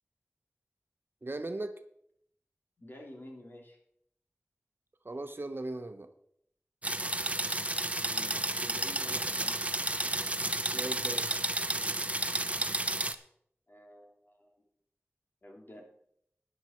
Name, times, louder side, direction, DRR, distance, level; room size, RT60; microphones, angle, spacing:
voice 1, 1.2-1.7 5.0-6.1 10.7-11.3, right 2 dB, 50° right, 8 dB, 1.0 m, -37 dB
voice 2, 2.8-3.8 8.0-9.6 12.3-12.5 13.7-14.6 15.4-15.9, left 1 dB, 45° left, 0 dB, 3.2 m, -50 dB
sound 1, 6.8-13.2, right 2 dB, 30° right, 0.8 m, -32 dB
13.0 x 9.8 x 4.5 m, 0.71 s
wide cardioid pair, 40°, 5 cm